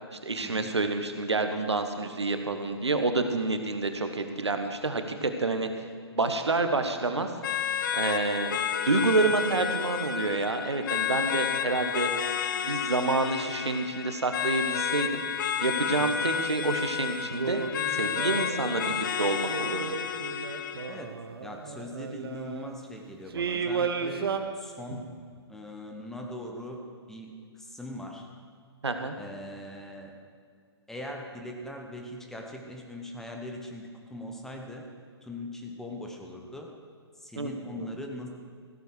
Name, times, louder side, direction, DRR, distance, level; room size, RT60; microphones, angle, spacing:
voice 1, 0.1-5.7 6.1-7.3 7.9-8.6 8.8-12.1 12.6-15.2 15.6-17.6 17.9-19.8 28.8-29.2 37.4-37.5 37.8-37.9, right 3 dB, 80° right, 7 dB, 1.3 m, -28 dB
sound 1, 7.4-21.0, left 8 dB, 50° left, 0.6 m, -31 dB
sound 2, 16.5-16.8 17.3-19.0 19.4-22.7 23.3-24.4, right 5 dB, 60° right, 1.1 m, -34 dB
voice 2, 20.9-25.1 25.5-26.8 27.1-28.3 29.2-30.2 30.9-34.9 35.2-36.7 37.2-38.3, left 1 dB, 5° left, 1 dB, 1.1 m, -41 dB
15.0 x 8.1 x 6.3 m, 2.1 s
figure-of-eight pair, 130°, 14 cm